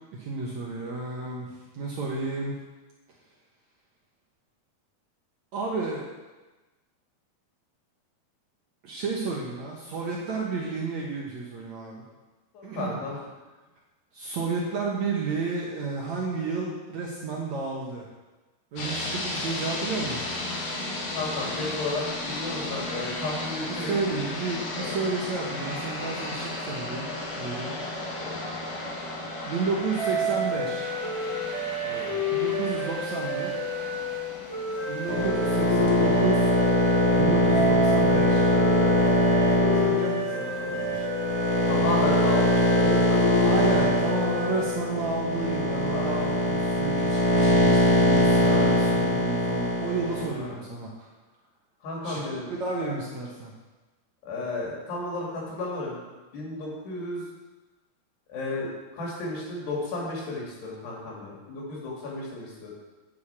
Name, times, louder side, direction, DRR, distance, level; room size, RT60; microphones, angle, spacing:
voice 1, 0.1-2.6 5.5-6.1 8.8-12.0 12.6-13.0 14.1-18.1 18.7-20.3 23.7-28.2 29.0-30.9 32.3-33.6 34.9-36.5 37.1-38.5 39.7-40.8 43.4-51.1 52.0-53.5, right 3 dB, 65° right, -3 dB, 1.9 m, -32 dB
voice 2, 12.5-13.2 21.2-23.9 24.7-25.0 28.2-28.4 31.8-32.2 39.7-41.1 41.6-44.0 45.9-46.4 48.4-48.7 50.4-50.5 51.8-52.5 54.2-56.0 56.3-57.3 58.3-62.7, left 2 dB, 85° left, -4 dB, 4.9 m, -33 dB
sound 1, 18.8-37.0, left 2 dB, 60° left, 3.1 m, -35 dB
sound 2, 30.0-45.0, left 1 dB, 5° left, 1.9 m, -30 dB
sound 3, 35.1-50.3, left 1 dB, 40° left, 1.5 m, -22 dB
9.4 x 6.6 x 7.3 m, 1.2 s
omnidirectional pair, 4.7 m